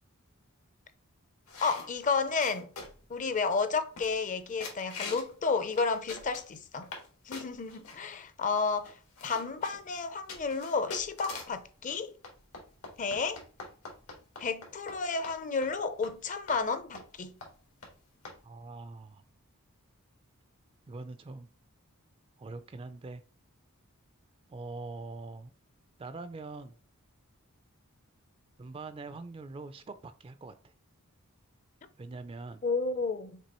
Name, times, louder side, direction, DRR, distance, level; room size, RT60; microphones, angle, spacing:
sound 1, 1.5-3.1 3.6-3.7 4.0-4.3 4.6-5.3 5.7-7.1 7.3-8.0 8.5-8.6 8.8-11.6 12.2-15.0 15.2-15.4 15.6-15.7 16.0-16.1 16.5-16.6 16.9-17.1 17.4-17.5 17.8-17.9 18.2-18.4, left 3 dB, 90° left, 1.7 m, -44 dB
voice 1, 1.6-2.7 3.1-6.9 7.3-12.1 13.0-13.4 14.4-17.4 32.6-33.4, left 4 dB, 35° left, 0.5 m, -31 dB
voice 2, 18.4-19.2 20.9-21.5 22.4-23.2 24.5-25.5 26.0-26.8 28.6-30.7 32.0-32.6, right 3 dB, 25° right, 0.3 m, -43 dB
6.1 x 2.9 x 2.9 m
head